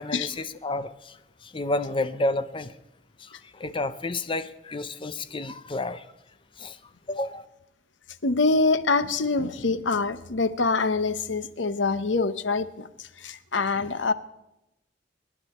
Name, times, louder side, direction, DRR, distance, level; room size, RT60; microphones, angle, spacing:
voice 1, 0.0-2.8 3.2-6.1 6.6-6.8 7.1-7.5, left 2 dB, 30° left, 0.7 m, -31 dB
voice 2, 8.2-12.9 13.2-14.1, left 3 dB, 90° left, 0.9 m, -25 dB
24.5 x 10.0 x 4.4 m
head